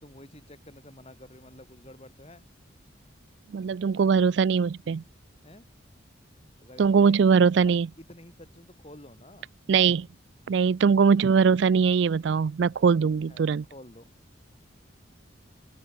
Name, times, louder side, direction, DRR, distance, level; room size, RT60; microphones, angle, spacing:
voice 1, 0.0-2.5 5.4-5.7 6.6-7.2 7.6-9.5 13.3-14.1, left 1 dB, 30° left, 4.9 m, -50 dB
voice 2, 3.5-5.0 6.8-7.9 9.7-10.1 10.5-13.6, right 6 dB, 65° right, 0.4 m, -21 dB
open air
head